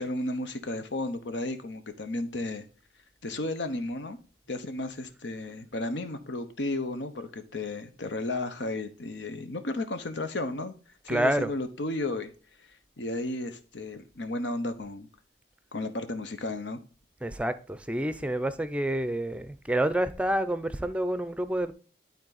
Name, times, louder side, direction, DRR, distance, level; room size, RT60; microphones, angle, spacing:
voice 1, 0.0-2.6 3.2-4.2 4.5-10.7 11.0-12.3 13.0-15.1 15.7-16.8, left 2 dB, 80° left, 1.0 m, -33 dB
voice 2, 11.1-11.5 17.2-21.7, right 1 dB, 5° right, 0.5 m, -28 dB
11.5 x 4.1 x 4.0 m
head